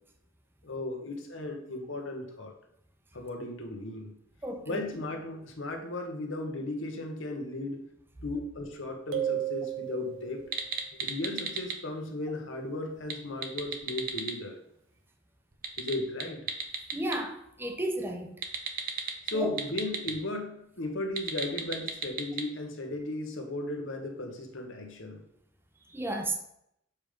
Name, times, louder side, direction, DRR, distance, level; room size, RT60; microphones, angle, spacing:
voice 1, 0.6-2.5 3.1-4.1 4.7-7.8 8.2-10.4 11.0-14.6 15.8-16.5 19.3-25.2, left 2 dB, 65° left, 3 dB, 1.3 m, -36 dB
voice 2, 4.4-4.8 16.9-18.3 19.3-19.5 25.9-26.4, right 1 dB, 10° right, 4 dB, 0.8 m, -33 dB
sound 1, 9.1-10.6, right 11 dB, 75° right, 0.8 m, -33 dB
sound 2, 10.4-11.8 13.0-14.3 15.5-17.2 18.4-20.1 21.0-22.4, right 6 dB, 45° right, 0.8 m, -34 dB
7.2 x 3.4 x 5.1 m, 0.75 s
head